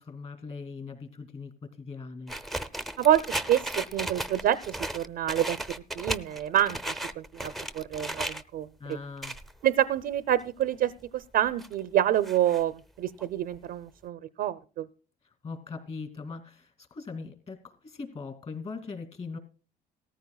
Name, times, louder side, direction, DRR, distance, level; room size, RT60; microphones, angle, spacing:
voice 1, 0.0-2.4 8.8-9.3 15.4-19.4, left 4 dB, 35° left, 6 dB, 2.5 m, -40 dB
sound 1, 2.3-8.4 8.9-9.5 10.0-10.1 10.5-10.6 11.2-11.7 12.2-12.6 13.2-13.3 13.5-13.6 13.9-14.0, right 1 dB, ahead, 0.6 m, -35 dB
voice 2, 3.0-5.6 5.9-8.7 9.6-14.9, right 11 dB, 65° right, 12 dB, 0.6 m, -27 dB
18.0 x 14.0 x 2.3 m, 0.36 s
cardioid pair, 110°, 17 cm